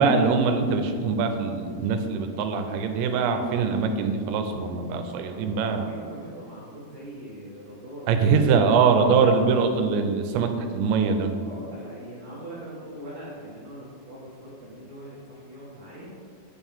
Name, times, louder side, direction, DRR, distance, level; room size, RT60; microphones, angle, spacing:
voice 1, 0.0-5.8 8.1-11.3, right 5 dB, 90° right, 6 dB, 2.8 m, -23 dB
voice 2, 5.3-8.8 11.4-16.2, right 1 dB, 65° right, -8 dB, 1.7 m, -42 dB
9.0 x 4.5 x 3.5 m, 2.1 s
omnidirectional pair, 5.0 m